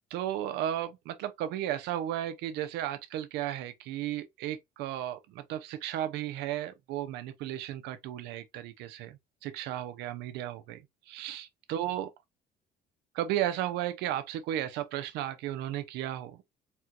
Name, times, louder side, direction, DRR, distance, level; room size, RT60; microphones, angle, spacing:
voice 1, 0.1-12.1 13.1-16.4, right 12 dB, 90° right, 0.6 m, -34 dB
4.3 x 2.2 x 2.4 m
cardioid pair, 110°, 17 cm